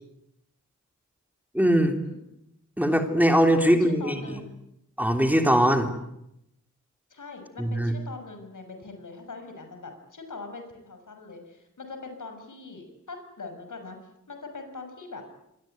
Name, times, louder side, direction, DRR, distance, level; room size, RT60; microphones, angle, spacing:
voice 1, 1.5-2.0 2.8-4.4 5.0-5.9 7.6-7.9, equal, 5° right, 5 dB, 3.2 m, -21 dB
voice 2, 3.5-4.6 7.1-14.0 14.3-15.2, left 3 dB, 80° left, 6 dB, 6.5 m, -42 dB
27.0 x 21.5 x 9.3 m, 0.81 s
wide cardioid pair, 85°, 31 cm